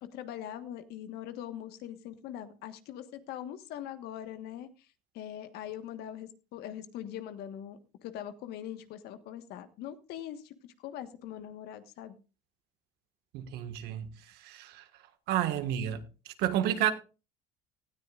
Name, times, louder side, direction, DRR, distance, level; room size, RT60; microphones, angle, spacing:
voice 1, 0.0-4.9 5.1-12.2, left 11 dB, 70° left, 1.5 m, -42 dB
voice 2, 13.3-14.1 14.4-14.8 15.3-16.0 16.4-16.9, right 11 dB, 75° right, 1.7 m, -30 dB
18.5 x 13.0 x 2.5 m
supercardioid pair, 100°, 17 cm